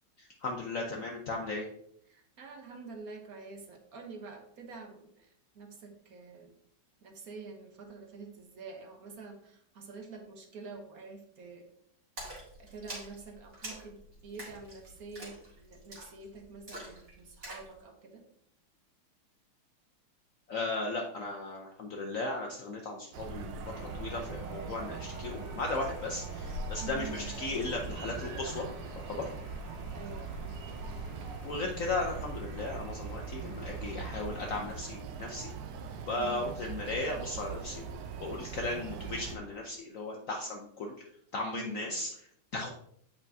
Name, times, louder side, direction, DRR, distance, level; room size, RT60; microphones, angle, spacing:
voice 1, 0.2-1.7 20.5-28.7 28.9-29.3 31.4-35.5 36.1-37.8 38.2-40.9 41.3-42.1 42.5-42.7, left 2 dB, 80° left, 1 dB, 0.7 m, -36 dB
voice 2, 2.1-5.3 5.5-6.5 7.0-11.7 12.6-18.2 26.8-27.3 29.9-30.3 36.2-36.5 41.5-41.9, right 4 dB, 55° right, 3 dB, 1.1 m, -47 dB
Splash splatter, 12.2-17.7, right 1 dB, 35° right, 2.2 m, -46 dB
sound 1, 23.1-39.4, right 5 dB, 80° right, 1.6 m, -41 dB
sound 2, 23.6-34.7, left 2 dB, 55° left, 1.5 m, -49 dB
8.3 x 5.6 x 2.7 m, 0.66 s
omnidirectional pair, 2.4 m